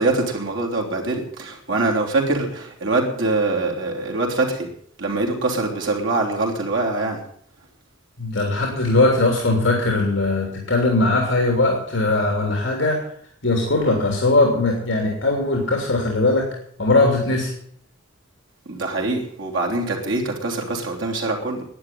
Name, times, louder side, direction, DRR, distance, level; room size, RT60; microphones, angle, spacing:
voice 1, 0.0-4.7 5.0-7.2 18.7-21.6, right 2 dB, 65° right, -1 dB, 3.4 m, -23 dB
voice 2, 8.2-13.0 13.4-16.5 16.8-17.5, left 2 dB, 60° left, 1 dB, 3.2 m, -20 dB
11.5 x 9.7 x 9.1 m, 0.63 s
head